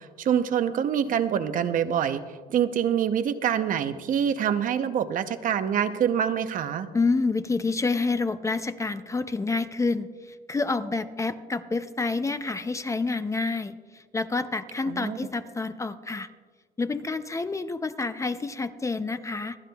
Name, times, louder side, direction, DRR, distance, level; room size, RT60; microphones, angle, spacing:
voice 1, 0.2-2.2 2.5-6.9 14.9-15.2, right 8 dB, 55° right, 10 dB, 0.7 m, -25 dB
voice 2, 6.9-16.3 16.8-19.6, left 3 dB, 20° left, 11 dB, 0.5 m, -28 dB
27.0 x 10.0 x 2.3 m, 1.5 s
cardioid pair, 110°, 17 cm